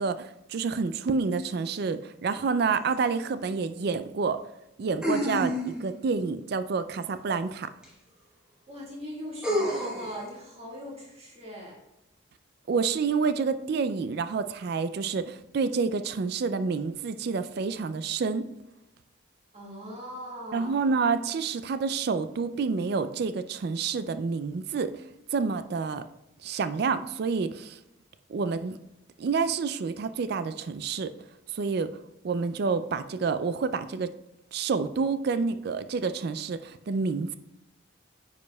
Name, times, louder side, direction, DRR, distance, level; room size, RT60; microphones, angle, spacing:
voice 1, 0.0-4.4 4.8-7.7 12.7-18.5 20.5-24.9 25.3-26.0 26.4-27.8 28.3-28.8 29.2-31.1 31.5-31.9 32.2-34.1 34.5-37.3, right 5 dB, 50° right, 12 dB, 0.3 m, -28 dB
sound 1, 2.9-3.0 5.0-6.0 7.8-7.9 9.4-10.2, equal, 5° right, 1.2 m, -28 dB
voice 2, 8.7-11.8 19.5-20.7, equal, 30° right, -3 dB, 1.7 m, -40 dB
9.3 x 5.3 x 2.3 m, 0.89 s
head